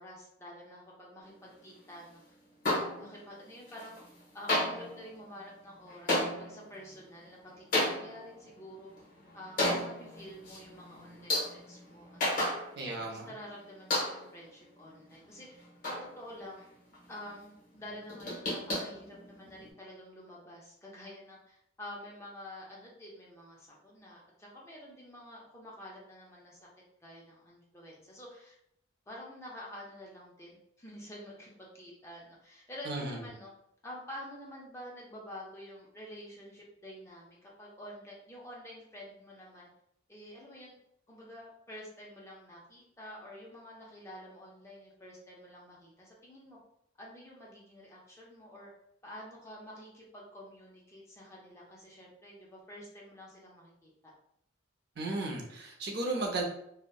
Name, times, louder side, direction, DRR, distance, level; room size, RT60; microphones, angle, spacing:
voice 1, 0.0-2.2 2.7-4.0 4.3-8.9 9.3-12.6 13.1-16.7 17.1-26.7 27.0-28.6 29.1-30.5 30.8-33.5 33.8-39.7 40.1-40.8 41.1-46.6 47.0-48.7 49.0-54.1, left 1 dB, 15° left, -4 dB, 0.4 m, -48 dB
sound 1, 2.6-3.4 3.7-4.2 4.5-13.1 13.4-13.5 13.9-14.4 14.9-16.6 16.9-17.3 17.7-19.7, left 1 dB, 45° left, 0.8 m, -34 dB
voice 2, 12.8-13.3 32.9-33.2 55.0-56.4, right 2 dB, 55° right, 0 dB, 0.5 m, -34 dB
2.7 x 2.1 x 2.2 m, 0.76 s
head